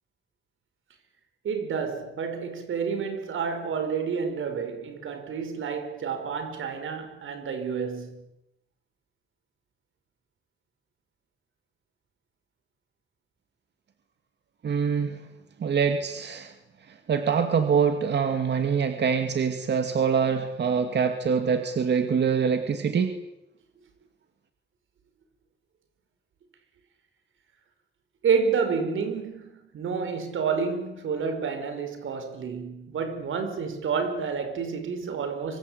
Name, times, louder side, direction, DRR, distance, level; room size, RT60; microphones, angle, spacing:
voice 1, 1.4-8.2 28.2-35.6, right 6 dB, 90° right, 4.9 m, -29 dB
voice 2, 14.6-15.1 15.6-16.5 17.1-23.1, right 6 dB, 60° right, 2.5 m, -24 dB
25.0 x 25.0 x 8.8 m
wide cardioid pair, 130°, 20 cm